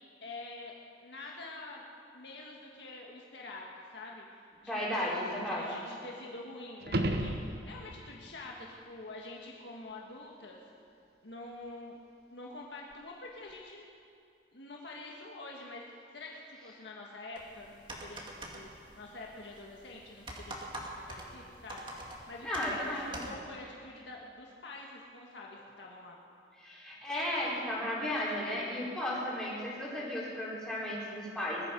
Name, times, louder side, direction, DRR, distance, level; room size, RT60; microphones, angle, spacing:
voice 1, 0.2-0.8 1.0-1.8 2.1-4.2 4.6-10.6 11.2-13.8 14.5-18.7 19.0-26.2, left 2 dB, 80° left, -2 dB, 1.6 m, -47 dB
voice 2, 4.7-5.7 22.4-23.3 26.6-31.6, left 1 dB, 5° left, -8 dB, 4.1 m, -34 dB
sound 1, 6.8-8.1 12.9-13.0, right 1 dB, 60° right, 1.1 m, -32 dB
sound 2, 17.4-23.3, right 1 dB, 25° right, 2.0 m, -46 dB
20.0 x 13.0 x 5.2 m, 2.4 s
head